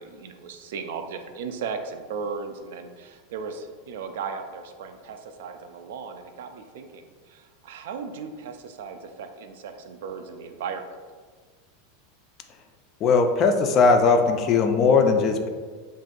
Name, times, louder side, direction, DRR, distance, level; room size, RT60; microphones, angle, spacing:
voice 1, 0.0-11.0, right 5 dB, 75° right, 7 dB, 0.3 m, -36 dB
voice 2, 13.0-15.5, left 4 dB, 35° left, 6 dB, 0.3 m, -19 dB
2.6 x 2.5 x 3.8 m, 1.5 s
supercardioid pair, 150°, 0 cm